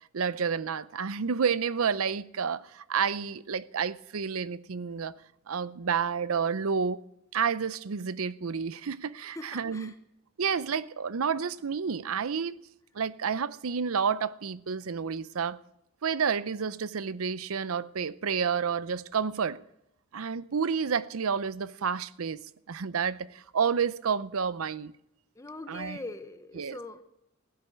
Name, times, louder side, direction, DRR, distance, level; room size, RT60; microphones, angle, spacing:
voice 1, 0.1-5.1 5.5-7.0 7.3-9.9 10.4-12.6 12.9-15.6 16.0-19.6 20.1-22.4 22.7-24.9 25.7-26.0 26.6-26.8, right 6 dB, 80° right, 0.6 m, -30 dB
voice 2, 9.3-10.0 25.4-27.0, left 2 dB, 15° left, 0.7 m, -42 dB
15.5 x 8.2 x 8.4 m
head